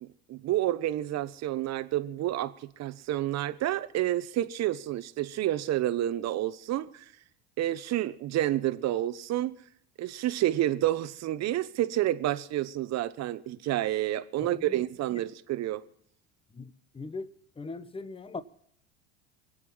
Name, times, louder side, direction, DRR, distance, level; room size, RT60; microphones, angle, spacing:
voice 1, 0.0-7.1 7.6-9.5 10.0-15.8, right 13 dB, 50° right, 1.1 m, -29 dB
voice 2, 14.4-14.8 16.5-18.4, left 3 dB, 15° left, 1.1 m, -40 dB
24.0 x 8.6 x 5.6 m
hypercardioid pair, 80°, 33 cm